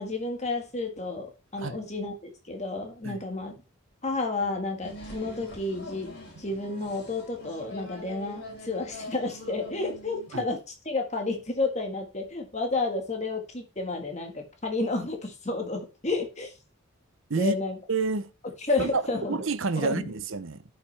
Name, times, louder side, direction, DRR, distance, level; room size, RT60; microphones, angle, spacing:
voice 1, 0.0-3.6 4.0-6.1 6.4-10.6 10.8-16.5 17.3-17.8 18.7-19.4 19.7-20.1, left 3 dB, 30° left, 1.6 m, -31 dB
sound 1, 4.8-10.3, left 1 dB, 50° left, 4.4 m, -43 dB
voice 2, 17.9-18.3 18.8-20.6, right 4 dB, 60° right, 0.7 m, -29 dB
12.0 x 5.7 x 3.3 m
head